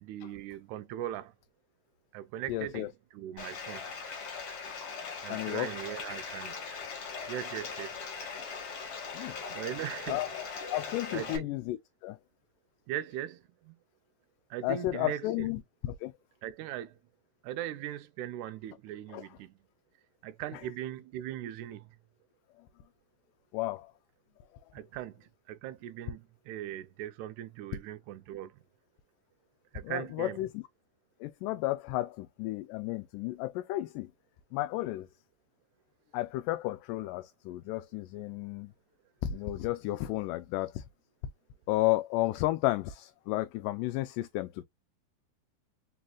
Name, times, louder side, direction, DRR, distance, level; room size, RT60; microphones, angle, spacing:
voice 1, 0.0-1.3 2.1-3.9 5.2-6.6 7.3-8.0 9.5-10.2 11.1-11.5 12.9-13.8 14.5-15.5 16.4-17.0 17.4-19.5 20.2-22.0 24.7-28.6 29.7-30.4, right 12 dB, 80° right, 1.7 m, -39 dB
voice 2, 2.5-2.9 5.3-5.7 9.1-9.4 10.1-10.4 10.7-11.8 12.0-12.2 14.6-16.1 19.1-19.3 22.6-22.7 23.5-23.9 29.8-30.6 31.2-34.1 34.5-35.1 36.1-38.7 39.2-40.8 41.7-44.6, left 16 dB, 80° left, 2.1 m, -32 dB
Bathtub (filling or washing), 3.4-11.4, left 5 dB, 50° left, 1.9 m, -40 dB
4.8 x 4.0 x 2.3 m
omnidirectional pair, 3.9 m